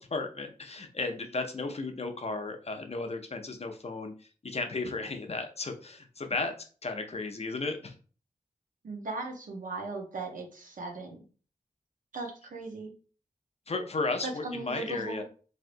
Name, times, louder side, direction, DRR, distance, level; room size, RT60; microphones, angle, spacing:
voice 1, 0.1-6.5 6.8-7.9 13.7-15.2, left 3 dB, 45° left, 5 dB, 0.6 m, -34 dB
voice 2, 8.8-11.2 12.1-12.9 14.2-15.2, right 3 dB, 65° right, 2 dB, 0.9 m, -38 dB
3.3 x 2.7 x 2.6 m, 0.38 s
cardioid pair, 50°, 14 cm